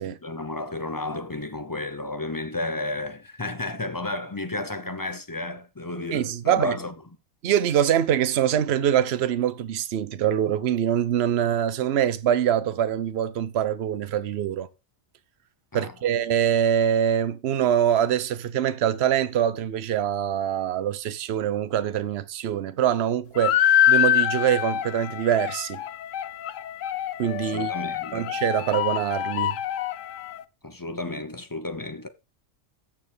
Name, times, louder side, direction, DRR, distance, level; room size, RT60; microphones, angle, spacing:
voice 1, 0.2-6.9 15.7-15.9 27.4-28.4 30.6-32.1, left 2 dB, 20° left, 0.6 m, -32 dB
voice 2, 6.1-6.7 7.4-14.7 15.7-25.8 27.2-27.7 28.1-29.6, right 10 dB, 60° right, 0.9 m, -24 dB
sound 1, 23.4-30.4, left 11 dB, 80° left, 1.0 m, -25 dB
13.5 x 6.6 x 3.4 m
omnidirectional pair, 1.3 m